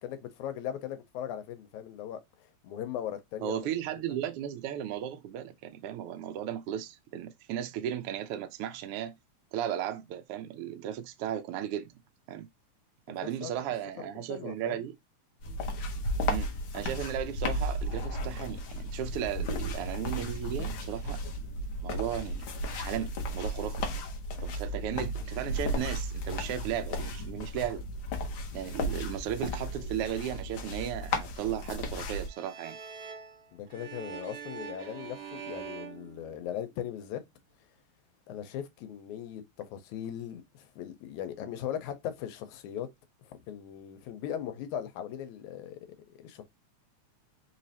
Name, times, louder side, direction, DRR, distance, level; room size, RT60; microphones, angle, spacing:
voice 1, 0.0-3.7 13.2-13.5 14.0-14.8 33.5-37.2 38.3-42.9 43.2-46.4, left 10 dB, 85° left, 2.2 m, -39 dB
voice 2, 3.4-9.1 9.5-11.9 12.3-12.5 13.1-15.0 16.3-21.2 21.8-22.5 22.7-23.8 24.4-27.8 28.5-32.8, right 10 dB, 80° right, 1.3 m, -35 dB
sound 1, 15.4-32.3, equal, 65° left, 1.3 m, -34 dB
sound 2, 32.3-36.9, right 7 dB, 60° right, 2.2 m, -44 dB
4.6 x 3.1 x 2.8 m
omnidirectional pair, 3.3 m